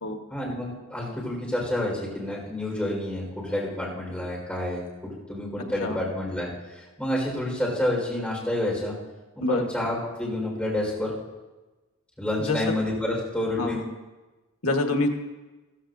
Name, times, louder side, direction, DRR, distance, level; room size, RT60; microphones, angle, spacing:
voice 1, 0.3-8.9 9.4-11.1 12.2-13.8, left 1 dB, 5° left, -5 dB, 4.7 m, -29 dB
voice 2, 14.6-15.1, left 2 dB, 85° left, 4 dB, 1.5 m, -25 dB
15.0 x 15.0 x 2.7 m, 1.2 s
head